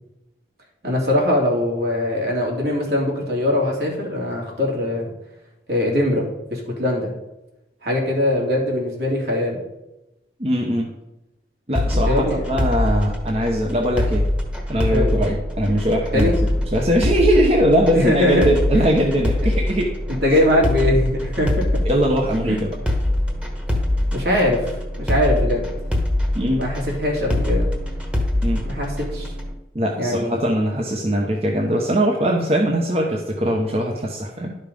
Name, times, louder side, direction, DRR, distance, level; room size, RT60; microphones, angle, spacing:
voice 1, 0.8-5.1 5.7-6.2 6.5-7.1 7.8-9.6 12.1-12.4 14.9-15.2 16.1-16.4 17.9-19.2 20.1-21.5 22.5-22.6 24.1-25.7 26.6-27.7 28.6-29.3 30.0-30.4, left 1 dB, 70° right, -2 dB, 2.8 m, -21 dB
voice 2, 10.4-11.0 11.7-14.3 14.7-16.3 16.7-19.9 21.9-22.7 26.3-26.6 28.4-28.7 29.7-34.5, equal, 35° right, 0 dB, 0.9 m, -21 dB
sound 1, 11.7-29.5, left 1 dB, 5° right, 1.2 m, -23 dB
11.5 x 5.5 x 5.3 m, 0.94 s
head